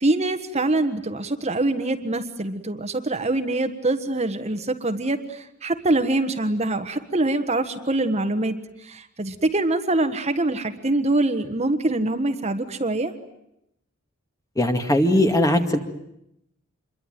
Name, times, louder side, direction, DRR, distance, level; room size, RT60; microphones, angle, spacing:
voice 1, 0.0-13.1, right 2 dB, 30° right, 7 dB, 1.4 m, -24 dB
voice 2, 14.6-15.8, left 1 dB, 15° left, 6 dB, 2.2 m, -19 dB
27.0 x 23.0 x 9.3 m, 0.81 s
head